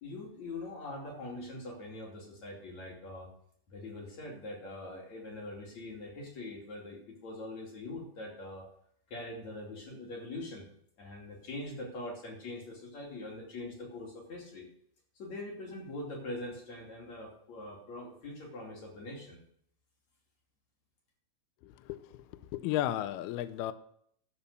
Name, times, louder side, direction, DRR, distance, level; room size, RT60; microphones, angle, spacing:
voice 1, 0.0-3.3 3.7-8.7 9.1-10.7 11.0-14.7 15.2-19.4, left 2 dB, 40° left, -1 dB, 3.5 m, -43 dB
voice 2, 21.6-23.7, left 13 dB, 90° left, 13 dB, 2.2 m, -34 dB
12.5 x 7.2 x 6.7 m, 0.67 s
omnidirectional pair, 5.3 m